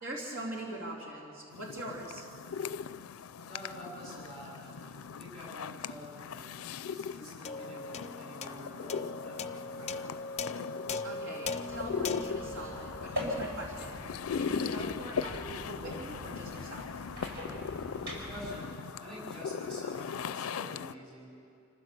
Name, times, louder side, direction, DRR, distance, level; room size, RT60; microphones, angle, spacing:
voice 1, 0.0-2.2 11.0-14.0 14.3-16.9, right 1 dB, 75° right, -2 dB, 3.3 m, -42 dB
sound 1, 1.5-20.9, left 6 dB, 90° left, 0.4 m, -39 dB
voice 2, 3.4-10.1 18.1-18.8 19.0-21.3, equal, 25° right, -5 dB, 5.9 m, -47 dB
sound 2, 7.4-14.1, left 3 dB, 30° left, 0.5 m, -40 dB
sound 3, 11.7-18.6, left 1 dB, 50° right, 5.1 m, -42 dB
26.0 x 15.0 x 6.8 m, 2.6 s
head